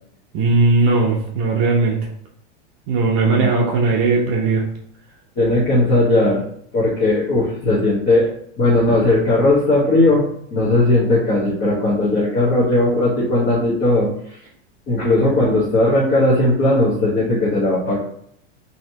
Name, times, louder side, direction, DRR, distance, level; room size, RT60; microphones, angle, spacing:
voice 1, 0.3-2.0 2.9-4.7, right 3 dB, 40° right, -1 dB, 0.6 m, -17 dB
voice 2, 5.4-6.4 6.7-8.3 8.6-10.2 10.5-14.4 14.9-18.0, left 2 dB, 30° left, -7 dB, 1.1 m, -17 dB
3.1 x 2.8 x 2.8 m, 0.67 s
supercardioid pair, 140°, 35 cm